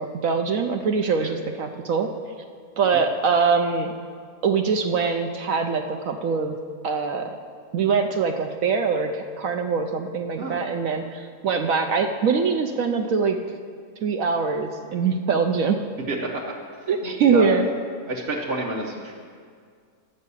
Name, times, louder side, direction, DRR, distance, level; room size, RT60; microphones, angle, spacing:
voice 1, 0.0-2.1 2.8-3.9 4.4-6.6 6.8-7.4 7.7-13.4 14.0-15.8 16.9-17.7, right 5 dB, 70° right, 5 dB, 1.0 m, -23 dB
voice 2, 16.1-16.4 16.8-17.5 18.1-19.1, right 2 dB, 40° right, -3 dB, 1.1 m, -29 dB
11.0 x 6.5 x 8.4 m, 2.1 s
omnidirectional pair, 1.6 m